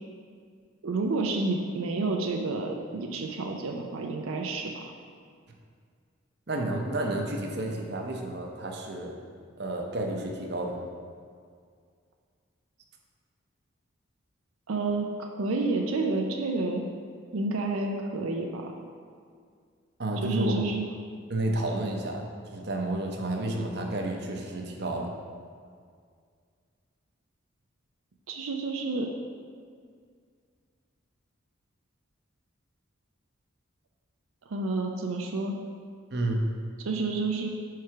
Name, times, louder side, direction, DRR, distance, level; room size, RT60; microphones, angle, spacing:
voice 1, 0.8-4.9 14.7-16.8 17.3-18.7 20.2-20.9 28.3-29.1 34.5-35.5 36.8-37.5, right 3 dB, 90° right, 2 dB, 0.5 m, -30 dB
voice 2, 6.5-9.2 9.6-10.9 20.0-20.6 21.3-22.2 22.5-25.1 36.1-36.5, right 1 dB, 50° right, 1 dB, 0.7 m, -31 dB
4.7 x 4.6 x 5.8 m, 2.1 s
head